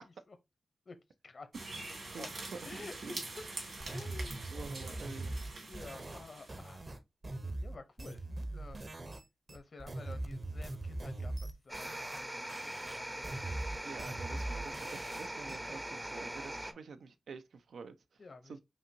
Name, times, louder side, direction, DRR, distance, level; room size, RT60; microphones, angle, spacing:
sound 1, 1.5-6.9, right 2 dB, 65° right, 2.2 m, -45 dB
voice 1, 2.1-3.2 4.5-5.4 13.8-18.6, right 5 dB, 85° right, 0.5 m, -48 dB
voice 2, 2.7-3.4 3.9-6.9 7.6-8.8 9.5-11.3 11.6-13.2 14.3-14.5 15.6-15.7 16.7-16.8 18.2-18.6, left 3 dB, 55° left, 0.8 m, -51 dB
sound 2, 3.8-9.2 9.5-12.2 12.5-15.6, right 2 dB, 45° right, 0.8 m, -41 dB
sound 3, 11.7-16.7, right 1 dB, 15° right, 0.5 m, -41 dB
5.4 x 2.6 x 2.7 m
cardioid pair, 70°, 0 cm